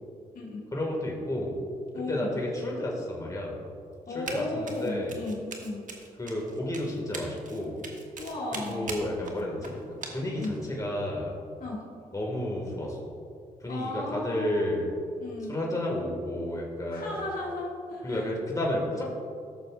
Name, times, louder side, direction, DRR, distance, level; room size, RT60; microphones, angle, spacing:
voice 1, 0.7-1.5 2.1-3.6 4.1-5.1 6.2-7.8 8.6-9.8 10.1-11.3 12.1-13.0 13.6-14.9 15.5-17.1 18.0-19.0, left 1 dB, 20° left, -2 dB, 2.0 m, -31 dB
voice 2, 1.9-2.4 4.1-5.8 8.2-9.1 10.4-10.5 11.6-11.8 13.7-14.8 15.2-15.6 16.9-18.2, left 2 dB, 70° left, -3 dB, 1.9 m, -35 dB
Run, 4.3-4.4 4.7-10.6, right 4 dB, 55° right, 1.2 m, -41 dB
14.0 x 6.6 x 2.5 m, 2.4 s
cardioid pair, 60°, 15 cm